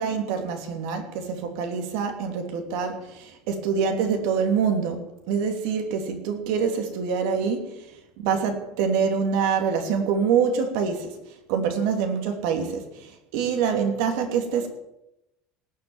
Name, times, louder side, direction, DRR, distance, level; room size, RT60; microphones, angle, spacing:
voice 1, 0.0-7.9 8.2-11.2 11.5-14.7, right 6 dB, 70° right, 5 dB, 3.0 m, -25 dB
18.5 x 6.6 x 9.0 m, 0.87 s
cardioid pair, 170°, 2 cm